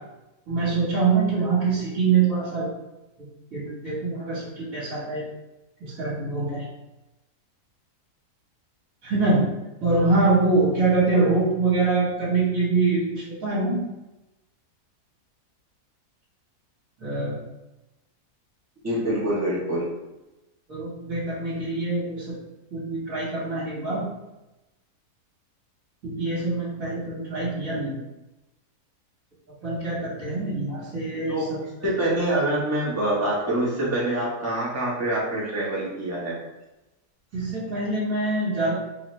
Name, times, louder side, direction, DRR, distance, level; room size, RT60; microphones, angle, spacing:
voice 1, 0.5-2.7 3.2-5.3 5.8-6.7 9.0-9.5 9.8-13.8 17.0-17.4 20.7-22.3 22.7-24.1 26.0-27.9 29.6-31.9 37.3-38.7, right 3 dB, 60° right, -8 dB, 1.6 m, -24 dB
voice 2, 18.8-19.9 31.3-31.5 31.8-36.3, right 1 dB, 10° right, -6 dB, 0.9 m, -25 dB
4.0 x 2.8 x 3.1 m, 1.0 s
omnidirectional pair, 1.7 m